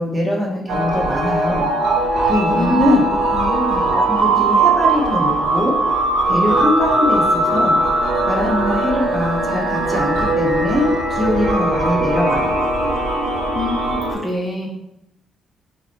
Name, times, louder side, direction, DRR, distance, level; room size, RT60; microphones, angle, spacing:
voice 1, 0.0-1.7 2.2-3.0 3.9-5.8 6.3-7.8 8.2-12.6, left 1 dB, 15° right, -2 dB, 1.2 m, -22 dB
sound 1, 0.7-14.1, right 2 dB, 85° right, 1.4 m, -19 dB
voice 2, 2.5-3.0 3.3-3.9 13.5-14.8, left 3 dB, 30° left, -1 dB, 0.9 m, -24 dB
4.0 x 3.0 x 4.3 m, 0.81 s
cardioid pair, 90°, 0 cm